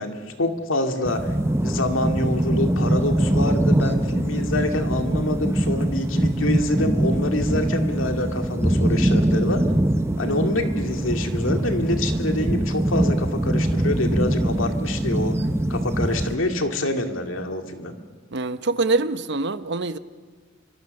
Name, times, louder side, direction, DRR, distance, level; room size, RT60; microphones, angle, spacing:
voice 1, 0.0-1.3 1.6-9.6 10.2-15.4 15.7-17.9, left 1 dB, 75° left, 5 dB, 2.3 m, -26 dB
sound 1, 1.0-16.4, right 1 dB, 15° right, 0.8 m, -23 dB
voice 2, 18.3-20.0, right 3 dB, 60° right, 12 dB, 0.9 m, -24 dB
26.5 x 24.0 x 6.6 m, 1.5 s
head